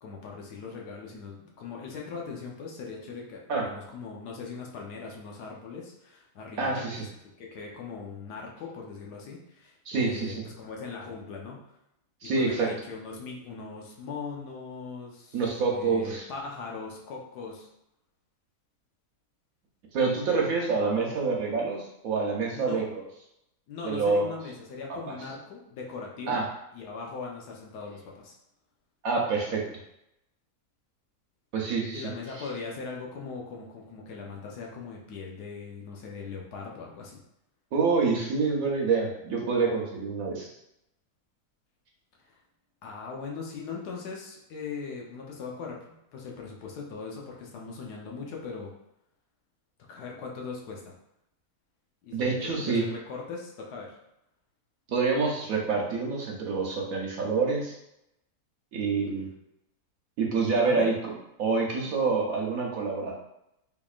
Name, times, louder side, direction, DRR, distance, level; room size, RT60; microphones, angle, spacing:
voice 1, 0.0-7.1 7.4-11.6 12.2-15.4 15.7-17.7 22.5-22.9 23.7-28.4 31.9-37.2 42.2-42.4 42.8-48.7 49.8-50.9 52.0-54.0 60.5-60.9, left 4 dB, 80° left, -1 dB, 1.3 m, -40 dB
voice 2, 6.6-7.0 9.9-10.4 12.2-12.7 15.3-16.2 19.9-23.0 23.8-24.3 26.3-26.5 29.0-29.6 31.5-32.1 37.7-40.5 52.1-52.8 54.9-57.7 58.7-59.3 60.2-61.1 61.4-63.1, right 4 dB, 65° right, -1 dB, 1.1 m, -27 dB
3.6 x 3.5 x 2.4 m, 0.83 s
omnidirectional pair, 1.7 m